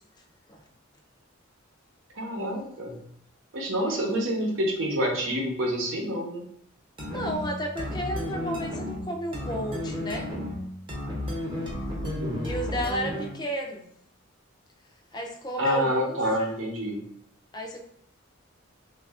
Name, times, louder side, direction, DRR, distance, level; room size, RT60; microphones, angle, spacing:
voice 1, 2.2-3.0 3.5-6.4 12.0-12.5 15.6-17.0, equal, 75° right, 0 dB, 0.9 m, -28 dB
voice 2, 3.8-4.5 7.1-10.3 12.4-13.8 15.1-16.2 17.5-17.9, equal, 20° left, 3 dB, 0.4 m, -33 dB
sound 1, 7.0-13.5, left 1 dB, 25° right, 0.8 m, -33 dB
3.2 x 2.4 x 3.5 m, 0.69 s
head